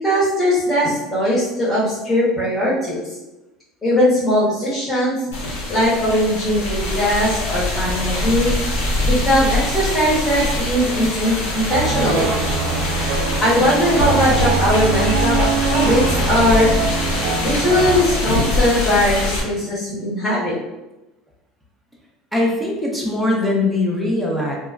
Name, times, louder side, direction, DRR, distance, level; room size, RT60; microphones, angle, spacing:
voice 1, 0.0-3.0 3.8-5.1 5.7-8.5 9.1-12.3 13.1-16.7 17.4-20.5, equal, 30° left, -11 dB, 1.4 m, -19 dB
sound 1, 5.3-19.4, left 2 dB, 85° left, 0.8 m, -23 dB
sound 2, 11.7-18.0, right 5 dB, 80° right, 0.3 m, -23 dB
voice 2, 22.3-24.6, left 2 dB, ahead, -3 dB, 0.6 m, -21 dB
2.9 x 2.2 x 2.4 m, 1.0 s
supercardioid pair, 100°, 0 cm